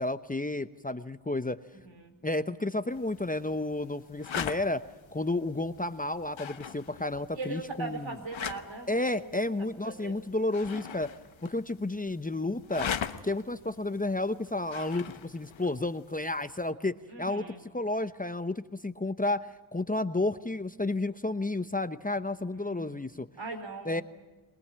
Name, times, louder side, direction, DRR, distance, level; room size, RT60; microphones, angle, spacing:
voice 1, 0.0-1.6 2.2-4.8 5.1-8.2 8.9-11.1 11.4-12.9 13.2-17.4 17.7-23.3 23.9-24.0, left 2 dB, 20° left, 11 dB, 0.8 m, -31 dB
voice 2, 1.8-2.1 7.3-9.4 9.8-10.2 17.1-17.6 22.6-23.0 23.4-24.0, right 3 dB, 70° right, 5 dB, 4.6 m, -40 dB
sound 1, 2.9-16.7, left 7 dB, 80° left, 1.1 m, -42 dB
24.0 x 19.0 x 8.8 m, 1.2 s
cardioid pair, 55°, 46 cm